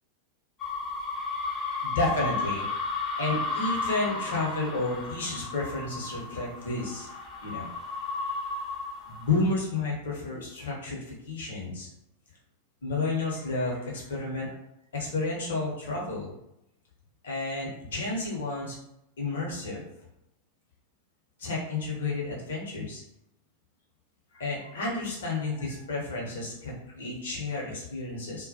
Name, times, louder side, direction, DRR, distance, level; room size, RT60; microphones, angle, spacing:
sound 1, 0.6-9.5, left 3 dB, 25° left, 0.6 m, -34 dB
voice 1, 1.3-2.7 3.2-7.1 7.4-7.7 9.1-11.9 12.8-14.6 14.9-16.3 17.2-18.7 19.2-19.8 21.4-23.0 24.3-28.5, left 3 dB, 60° left, -3 dB, 0.8 m, -31 dB
2.2 x 2.2 x 2.6 m, 0.83 s
figure-of-eight pair, 90°, 0 cm